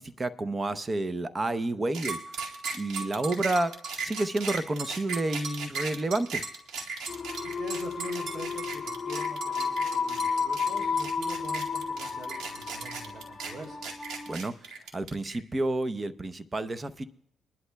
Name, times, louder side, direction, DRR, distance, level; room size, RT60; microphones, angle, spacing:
voice 1, 0.0-3.7 4.0-6.4 14.3-17.0, right 2 dB, 25° right, 12 dB, 0.8 m, -30 dB
sound 1, 1.9-15.4, right 5 dB, 85° right, 2.1 m, -36 dB
sound 2, 7.1-14.4, left 5 dB, 30° left, 0.9 m, -32 dB
voice 2, 7.4-13.8, right 3 dB, 45° right, 2 dB, 3.1 m, -44 dB
23.5 x 11.5 x 2.3 m, 0.73 s
cardioid pair, 90°, 0 cm